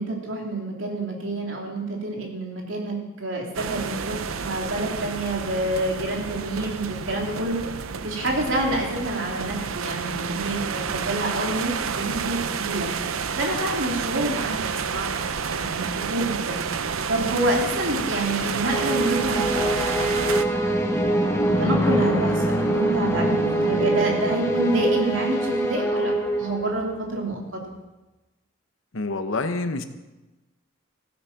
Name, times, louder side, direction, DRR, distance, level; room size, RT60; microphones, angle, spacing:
voice 1, 0.0-7.6 8.0-12.9 13.4-16.6 17.1-20.3 21.3-26.1 26.4-27.6, right 1 dB, 70° right, 0 dB, 2.9 m, -28 dB
sound 1, 3.5-20.4, right 6 dB, 90° right, 0.7 m, -30 dB
sound 2, 18.6-27.0, right 1 dB, 15° left, 1.2 m, -24 dB
voice 2, 28.9-29.8, left 3 dB, 75° left, 9 dB, 1.0 m, -27 dB
15.0 x 8.8 x 5.8 m, 1.1 s
head